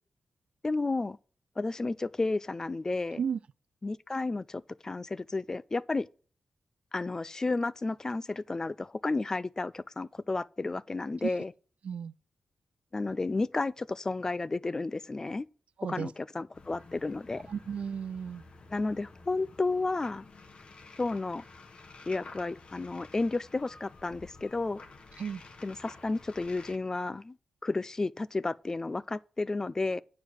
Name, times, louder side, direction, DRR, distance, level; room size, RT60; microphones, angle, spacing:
voice 1, 0.6-1.2 1.6-3.2 3.8-6.1 6.9-11.5 12.9-15.5 15.9-17.5 18.7-20.3 21.0-21.4 22.1-24.8 25.6-27.4 27.6-30.0, left 3 dB, 25° left, 0.4 m, -32 dB
sound 1, 16.5-26.8, left 3 dB, 50° left, 1.1 m, -51 dB
voice 2, 17.5-18.4 25.2-25.4, right 7 dB, 65° right, 0.4 m, -34 dB
9.4 x 4.8 x 6.3 m
cardioid pair, 90°, 2 cm